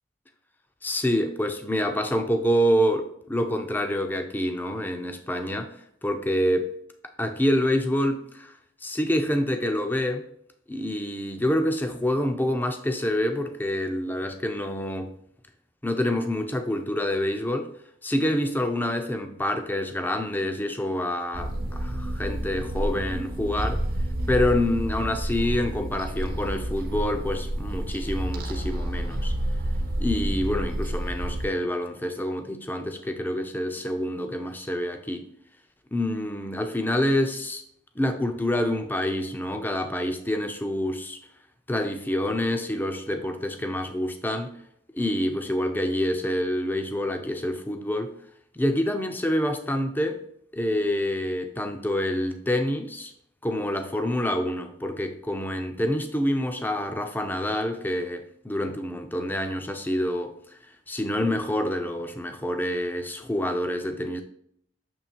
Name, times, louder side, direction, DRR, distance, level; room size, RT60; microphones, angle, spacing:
voice 1, 0.8-5.7 6.0-6.7 7.2-8.6 8.8-10.2 10.7-15.1 15.8-17.7 18.0-23.8 24.3-29.3 30.0-35.3 35.9-37.6 38.0-41.2 41.7-44.5 44.9-48.1 48.5-50.2 50.5-53.1 53.4-60.4 60.9-64.2, left 1 dB, 10° left, 0.5 m, -27 dB
sound 1, 21.3-31.5, right 1 dB, 45° right, 0.7 m, -29 dB
7.0 x 3.2 x 4.3 m
head